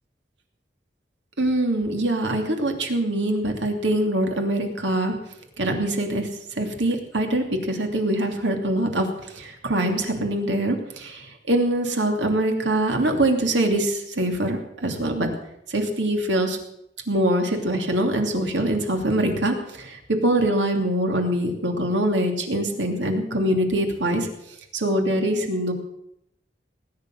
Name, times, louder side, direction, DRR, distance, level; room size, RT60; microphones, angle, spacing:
voice 1, 1.4-5.1 5.6-6.3 6.6-9.1 9.3-15.3 15.7-16.6 17.1-24.3 24.7-25.7, right 1 dB, 85° right, 3 dB, 2.8 m, -23 dB
19.0 x 10.0 x 6.4 m, 0.79 s
head